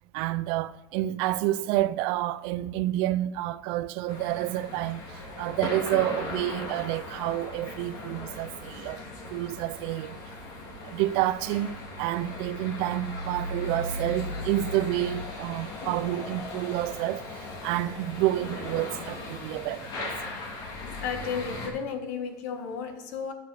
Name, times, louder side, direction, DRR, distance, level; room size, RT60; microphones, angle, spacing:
voice 1, 0.1-9.0 9.3-10.3 10.8-20.1, right 15 dB, 60° right, 0.4 m, -29 dB
sound 1, 4.1-21.7, left 2 dB, 40° left, 2.2 m, -38 dB
voice 2, 21.0-23.3, left 6 dB, 75° left, 1.4 m, -33 dB
11.5 x 6.6 x 4.8 m
cardioid pair, 155°, 10 cm